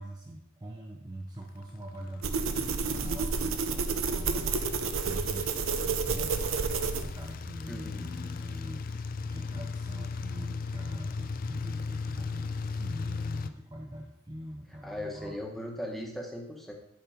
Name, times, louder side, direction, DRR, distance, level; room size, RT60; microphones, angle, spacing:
voice 1, 0.0-15.4, right 1 dB, 20° right, 0 dB, 0.7 m, -44 dB
sound 1, 1.5-13.5, left 4 dB, 45° left, 0.4 m, -37 dB
sound 2, 2.2-7.3, right 5 dB, 85° right, 0.7 m, -30 dB
voice 2, 7.7-8.0 14.8-16.7, left 1 dB, ahead, -1 dB, 1.3 m, -38 dB
10.5 x 4.2 x 5.0 m, 0.79 s
head